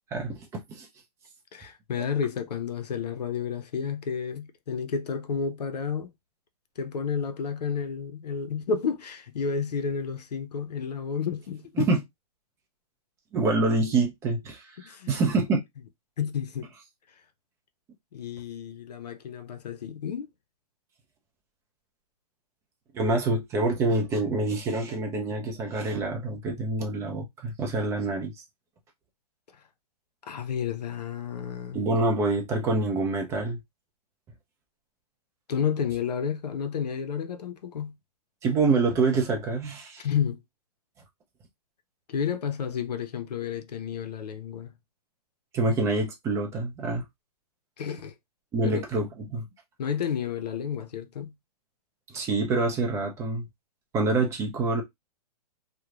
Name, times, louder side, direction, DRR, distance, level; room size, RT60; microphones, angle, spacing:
voice 1, 0.1-0.9 11.8-12.0 13.3-15.6 22.9-28.3 31.7-33.6 38.4-40.0 45.5-47.0 48.5-49.4 52.1-53.5 53.9-54.8, right 3 dB, 15° right, 0.5 m, -26 dB
voice 2, 1.5-6.1 6.8-11.9 14.8-15.2 16.2-16.7 18.1-20.3 30.2-31.8 35.5-37.9 40.0-40.4 42.1-44.7 47.8-48.1 48.6-48.8 49.8-51.3, left 7 dB, 85° left, 0.5 m, -31 dB
2.9 x 2.1 x 2.3 m
hypercardioid pair, 145°, 20 cm